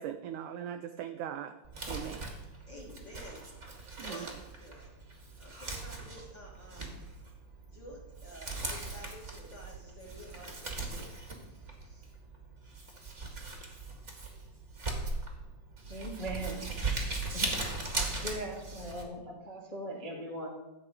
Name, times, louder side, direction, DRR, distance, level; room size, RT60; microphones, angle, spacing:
voice 1, 0.0-1.5 1.9-2.3 4.0-4.3, right 9 dB, 85° right, 9 dB, 1.8 m, -39 dB
Crumpling crinkling, 1.6-19.0, right 3 dB, 35° right, 1.2 m, -39 dB
voice 2, 2.7-4.3 4.6-4.9 5.4-6.9 7.7-12.1, left 1 dB, 45° left, -2 dB, 1.6 m, -51 dB
voice 3, 15.9-17.5 18.1-20.5, right 1 dB, 25° left, 0 dB, 0.8 m, -40 dB
13.5 x 5.0 x 8.1 m, 1.0 s
omnidirectional pair, 4.2 m